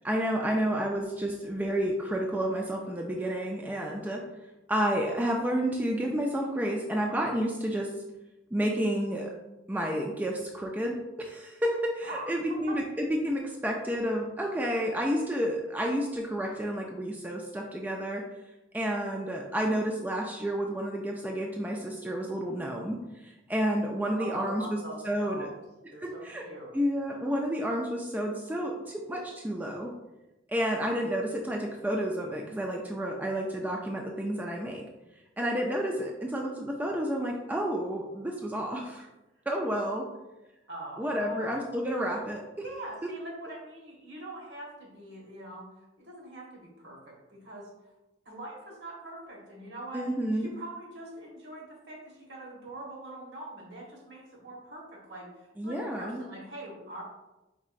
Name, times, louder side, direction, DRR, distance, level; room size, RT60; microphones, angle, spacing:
voice 1, 0.0-4.2 4.7-7.9 8.5-9.3 9.7-18.2 18.7-24.8 25.1-25.5 26.0-26.4 26.7-29.9 30.5-34.8 35.4-39.1 39.5-40.1 41.0-42.4 49.9-50.5 55.6-56.2, equal, 10° right, 0 dB, 0.3 m, -30 dB
voice 2, 12.0-12.8 24.2-25.6 25.9-26.7 40.7-41.7 42.6-47.9 48.2-57.0, right 1 dB, 65° right, -2 dB, 1.4 m, -43 dB
4.6 x 4.1 x 2.5 m, 1.0 s
head